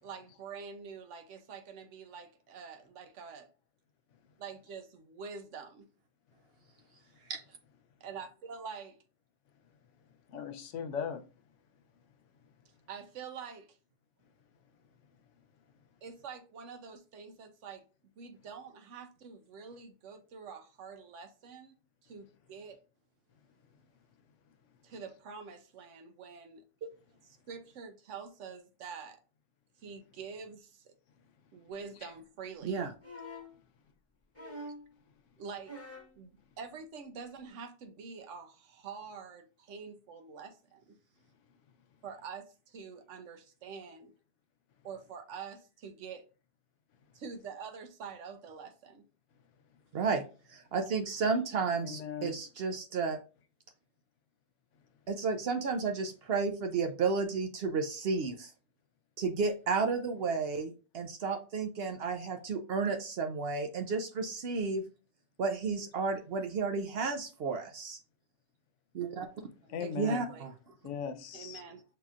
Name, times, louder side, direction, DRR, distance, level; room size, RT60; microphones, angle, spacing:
voice 1, 0.0-3.5 4.4-5.9 8.0-9.0 12.9-13.8 16.0-17.8 18.2-21.7 22.0-22.8 24.8-26.6 27.2-29.2 29.8-30.9 31.5-32.9 35.4-35.8 36.2-41.0 42.0-44.1 44.8-46.3 47.1-49.1 69.8-70.5 71.3-71.8, right 6 dB, 85° right, 1.0 m, -46 dB
voice 2, 10.3-11.2 51.8-52.4 69.7-70.3 70.8-71.6, left 7 dB, 85° left, 1.0 m, -38 dB
sound 1, 33.0-33.6 34.3-34.9 35.6-36.2 37.4-37.5, left 1 dB, 15° left, 0.8 m, -45 dB
voice 3, 50.5-53.2 55.1-58.5 59.2-64.8 65.4-68.0 68.9-69.3 70.0-70.5, right 4 dB, 65° right, 0.7 m, -32 dB
5.8 x 2.9 x 2.4 m
omnidirectional pair, 1.2 m